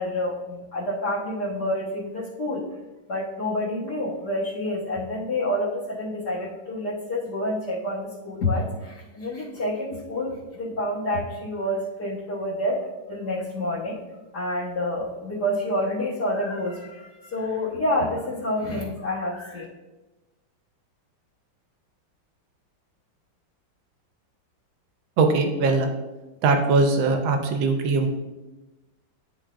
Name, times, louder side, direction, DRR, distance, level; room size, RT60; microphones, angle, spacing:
voice 1, 0.0-2.6 3.1-14.0 14.3-19.6, left 1 dB, 60° left, -8 dB, 1.7 m, -28 dB
voice 2, 25.2-25.9 26.4-28.1, right 3 dB, 90° right, 5 dB, 1.5 m, -21 dB
11.0 x 3.8 x 2.5 m, 1.1 s
omnidirectional pair, 2.1 m